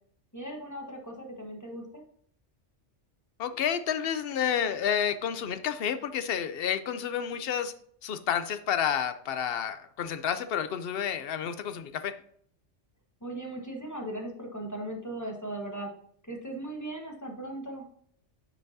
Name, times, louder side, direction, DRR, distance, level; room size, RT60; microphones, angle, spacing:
voice 1, 0.3-2.0 13.2-15.9 16.3-17.8, right 1 dB, 15° left, 0 dB, 1.2 m, -38 dB
voice 2, 3.4-7.7 8.0-12.1, left 8 dB, 60° left, 11 dB, 0.8 m, -30 dB
9.1 x 5.7 x 2.7 m, 0.62 s
omnidirectional pair, 1.2 m